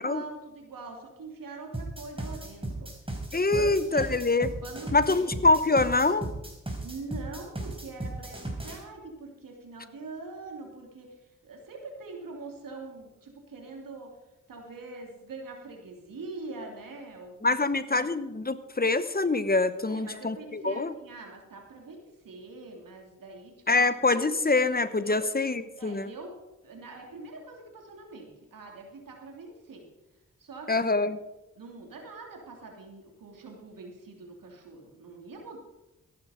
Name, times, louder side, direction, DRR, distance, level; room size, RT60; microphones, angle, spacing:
voice 1, 0.0-2.9 3.5-4.1 4.6-5.3 6.8-14.2 14.5-18.1 19.9-24.3 25.0-25.2 25.8-26.4 26.6-29.9 30.4-30.8 31.6-35.6, right 3 dB, 80° right, 1 dB, 3.0 m, -44 dB
sound 1, 1.7-8.8, right 2 dB, 15° right, 4.4 m, -36 dB
voice 2, 3.3-4.5 4.9-6.3 17.4-20.9 23.7-26.1 30.7-31.2, left 3 dB, 30° left, 14 dB, 0.9 m, -25 dB
14.0 x 11.5 x 5.1 m, 0.99 s
cardioid pair, 40°, 33 cm